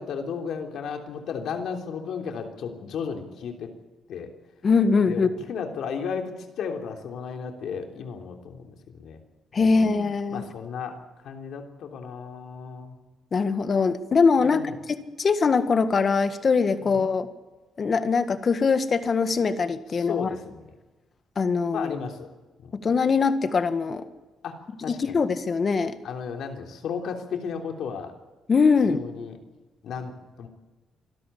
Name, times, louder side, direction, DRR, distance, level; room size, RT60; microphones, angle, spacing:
voice 1, 0.0-3.7 4.1-4.3 5.1-9.2 9.6-9.9 10.3-11.0 11.2-12.9 14.4-14.7 16.8-17.0 19.9-20.6 21.7-22.3 22.6-22.7 24.4-25.2 26.0-28.1 28.8-29.4 29.8-30.5, left 6 dB, 70° left, 4 dB, 3.2 m, -34 dB
voice 2, 4.6-5.3 9.5-10.4 13.3-14.6 15.2-17.3 17.8-20.3 21.4-21.9 22.8-24.0 24.9-26.0 28.5-29.0, left 5 dB, 40° left, 11 dB, 1.6 m, -22 dB
25.0 x 13.5 x 8.5 m, 1.2 s
cardioid pair, 90°, 0 cm